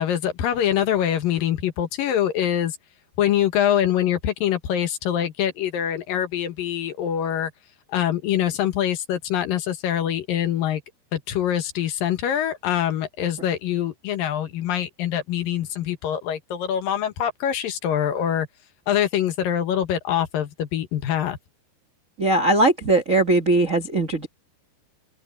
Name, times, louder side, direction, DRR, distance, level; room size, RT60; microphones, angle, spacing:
voice 1, 0.0-2.8 3.2-7.5 7.9-10.8 11.1-18.5 18.9-21.4, left 10 dB, 65° left, 2.8 m, -24 dB
voice 2, 22.2-24.3, right 2 dB, 75° right, 0.7 m, -19 dB
omnidirectional pair, 4.8 m